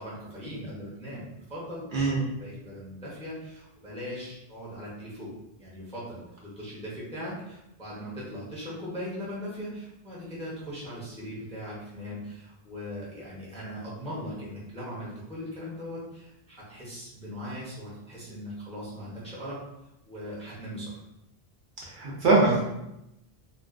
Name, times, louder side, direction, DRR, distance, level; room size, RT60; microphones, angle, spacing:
voice 1, 0.0-19.6 20.0-21.0, equal, 10° left, -8 dB, 0.6 m, -39 dB
voice 2, 21.9-22.6, right 3 dB, 60° right, -5 dB, 0.7 m, -22 dB
2.3 x 2.2 x 2.4 m, 0.88 s
omnidirectional pair, 1.0 m